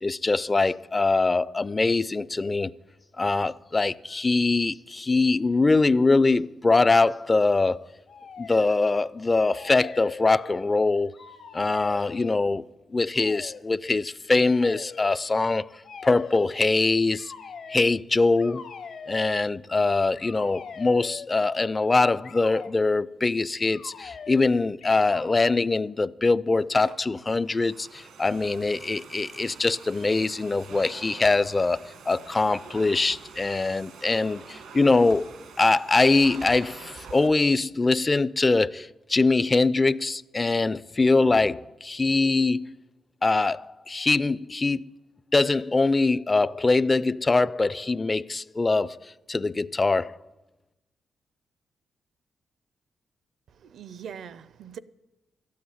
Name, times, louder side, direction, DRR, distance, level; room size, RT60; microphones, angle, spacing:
voice 1, 0.0-2.7 3.2-7.9 8.4-11.2 11.5-12.6 12.9-17.3 17.7-18.7 19.1-42.8 43.2-44.8 45.3-50.2, left 3 dB, 25° left, 0.4 m, -23 dB
sound 1, 8.1-9.0 9.3-10.8 11.1-12.4 13.1-13.6 14.5-15.1 15.8-16.6 17.1-17.8 18.4-19.3 20.2-21.4 22.2-22.7 23.6-24.5 24.8-25.5, left 6 dB, 70° left, 1.2 m, -42 dB
Domestic sounds home sounds, 26.6-37.3, right 5 dB, 90° right, 1.5 m, -46 dB
voice 2, 53.6-54.8, right 8 dB, 75° right, 0.6 m, -41 dB
12.5 x 8.5 x 9.5 m
cardioid pair, 95°, 0 cm